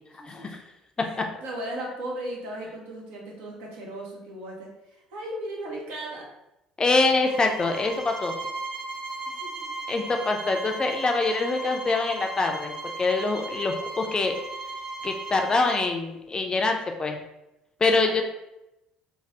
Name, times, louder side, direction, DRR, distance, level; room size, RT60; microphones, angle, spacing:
voice 1, 0.2-0.5 1.0-6.3 9.4-9.7 18.0-18.2, right 1 dB, 65° right, -2 dB, 0.9 m, -37 dB
voice 2, 6.8-8.3 9.9-12.7 13.0-14.4 15.0-17.2 17.8-18.2, left 3 dB, 25° left, 3 dB, 0.4 m, -24 dB
sound 1, 7.2-15.9, right 2 dB, 35° right, 1.3 m, -36 dB
3.1 x 2.3 x 2.7 m, 0.89 s
hypercardioid pair, 55°, 3 cm